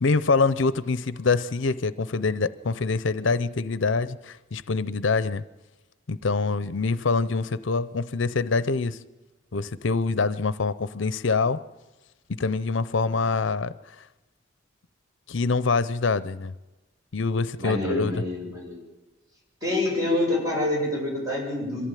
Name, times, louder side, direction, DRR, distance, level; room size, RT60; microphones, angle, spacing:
voice 1, 0.0-5.4 6.1-9.0 9.5-11.6 12.3-14.0 15.3-16.5 17.1-18.1, left 4 dB, 70° left, 16 dB, 0.6 m, -25 dB
voice 2, 17.6-18.8 19.6-21.9, left 1 dB, 20° right, -3 dB, 7.8 m, -27 dB
23.0 x 15.0 x 9.2 m, 1.1 s
head